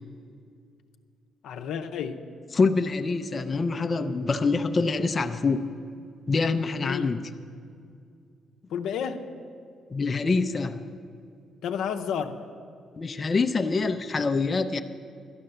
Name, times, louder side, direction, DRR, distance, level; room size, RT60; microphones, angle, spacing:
voice 1, 1.4-2.2 6.8-7.1 8.7-9.3 11.6-12.4, left 7 dB, 80° left, 5 dB, 0.7 m, -31 dB
voice 2, 2.5-5.6 6.3-7.2 9.9-10.8 13.0-14.8, left 4 dB, 35° left, 7 dB, 0.5 m, -25 dB
12.5 x 8.8 x 6.7 m, 2.4 s
cardioid pair, 90°, 0 cm